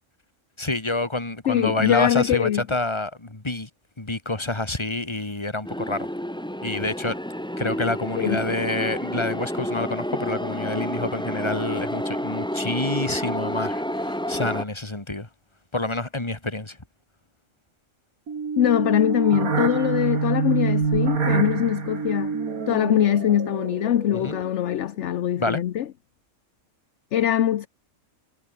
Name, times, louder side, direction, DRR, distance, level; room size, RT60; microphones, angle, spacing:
voice 1, 0.6-3.7 4.0-6.1 6.6-7.2 7.6-15.3 15.7-16.8 24.1-24.4 25.4-25.6, left 2 dB, 20° left, 2.3 m, -27 dB
voice 2, 1.5-2.6 8.2-8.4 18.6-22.4 22.7-25.8 27.1-27.7, left 11 dB, 60° left, 1.0 m, -22 dB
sound 1, 5.6-14.6, equal, 5° left, 1.9 m, -30 dB
sound 2, 18.3-24.7, right 5 dB, 80° right, 2.5 m, -26 dB
omnidirectional pair, 1.5 m